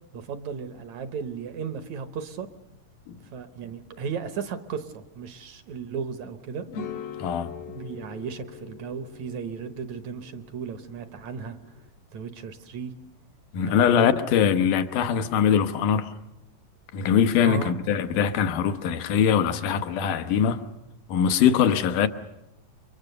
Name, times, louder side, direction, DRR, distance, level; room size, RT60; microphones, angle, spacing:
voice 1, 0.1-2.5 3.3-6.7 7.7-11.6 12.1-12.9 13.6-14.1 17.4-17.8, right 6 dB, 65° right, 2.1 m, -35 dB
sound 1, 6.7-11.9, left 6 dB, 55° left, 1.8 m, -42 dB
voice 2, 7.2-7.5 13.5-16.1 16.9-20.7 21.1-22.1, left 8 dB, 75° left, 2.5 m, -22 dB
29.5 x 24.0 x 6.8 m
omnidirectional pair, 4.0 m